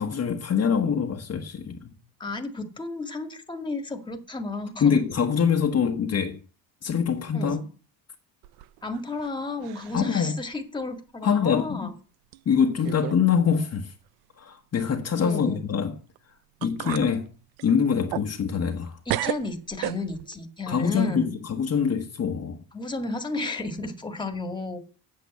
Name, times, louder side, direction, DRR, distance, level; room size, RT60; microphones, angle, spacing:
voice 1, 0.0-2.0 4.8-6.4 6.8-7.6 9.9-10.4 11.2-11.9 12.4-13.9 14.4-16.0 16.6-17.3 17.6-19.0 20.7-22.6, left 7 dB, 40° left, 1.3 m, -24 dB
voice 2, 2.2-5.0 7.3-7.7 8.8-11.9 15.2-15.7 19.1-21.3 22.7-24.8, left 2 dB, 10° left, 1.9 m, -32 dB
sound 1, 8.4-9.3 9.6-10.1 10.5-10.6 11.5-11.6 12.3-12.4 12.8-13.2 13.5-13.6 16.2-16.3 16.6-17.1 17.6-18.8 19.1-20.4, right 15 dB, 75° right, 0.6 m, -33 dB
8.5 x 7.0 x 8.1 m
cardioid pair, 100°, 39 cm